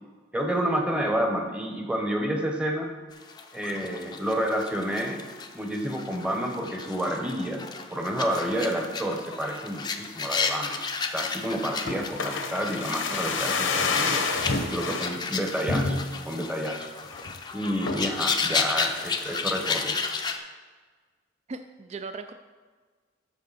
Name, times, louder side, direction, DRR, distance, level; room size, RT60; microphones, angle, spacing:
voice 1, 0.3-2.9 3.5-5.2 5.5-7.6 7.9-10.8 11.1-14.2 14.6-16.0 16.2-16.9 17.5-19.9, equal, 5° right, 3 dB, 0.9 m, -29 dB
sound 1, 3.1-20.4, left 5 dB, 20° left, 0.5 m, -33 dB
sound 2, 11.9-15.1 15.7-16.3 16.7-16.8 17.0-17.4 17.9-18.2 18.6-19.3 19.6-19.7, left 4 dB, 80° left, 0.9 m, -28 dB
voice 2, 21.5-22.3, right 4 dB, 35° right, 8 dB, 0.3 m, -38 dB
13.0 x 4.7 x 4.0 m, 1.5 s
head